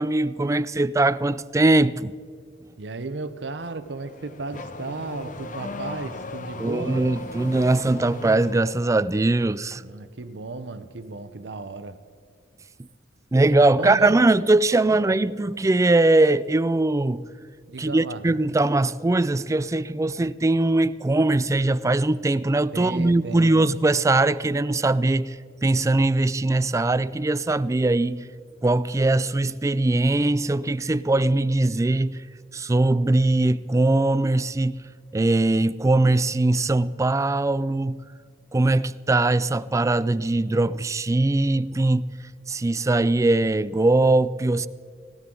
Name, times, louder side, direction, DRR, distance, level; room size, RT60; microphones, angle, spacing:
voice 1, 0.0-2.1 6.6-9.8 13.3-17.2 17.8-28.3 28.6-32.2 32.5-34.8 35.1-38.0 38.5-42.1 42.5-44.7, right 2 dB, 15° right, 0.4 m, -21 dB
voice 2, 2.8-7.0 9.8-12.0 13.5-14.2 14.9-15.1 17.7-18.2 22.7-23.6, right 3 dB, 70° right, 0.8 m, -34 dB
Car / Accelerating revving vroom, 3.8-8.8, left 2 dB, 45° left, 0.9 m, -37 dB
19.5 x 18.0 x 3.8 m
head